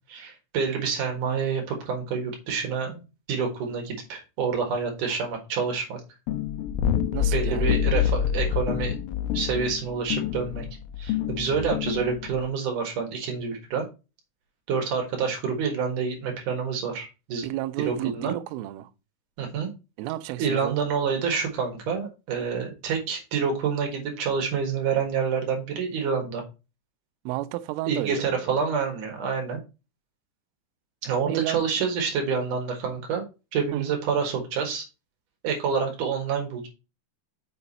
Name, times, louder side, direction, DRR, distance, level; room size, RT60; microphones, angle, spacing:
voice 1, 0.1-6.0 7.3-8.9 9.3-10.7 11.0-13.9 14.7-17.4 17.8-18.4 19.4-19.7 20.4-26.4 27.9-29.6 31.0-33.2 33.5-34.9 35.4-36.7, right 6 dB, 60° right, 2.2 m, -28 dB
sound 1, 6.3-12.5, left 9 dB, 85° left, 3.2 m, -27 dB
voice 2, 7.1-7.8 17.4-18.9 20.0-20.8 27.3-28.5 31.2-31.7 33.7-33.9, right 15 dB, 85° right, 3.2 m, -32 dB
6.9 x 6.0 x 4.1 m
omnidirectional pair, 5.8 m